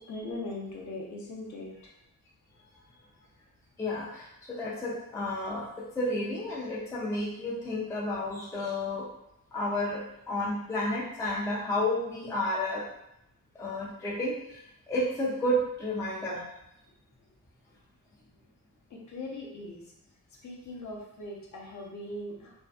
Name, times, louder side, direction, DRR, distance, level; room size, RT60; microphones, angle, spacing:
voice 1, 0.0-1.7 18.9-19.8 20.4-22.5, left 2 dB, 50° left, -2 dB, 0.6 m, -40 dB
voice 2, 3.8-9.1 9.5-12.9 13.6-14.6 14.9-16.4, left 1 dB, 10° left, -5 dB, 0.3 m, -31 dB
2.5 x 2.4 x 2.2 m, 0.82 s
wide cardioid pair, 160°, 36 cm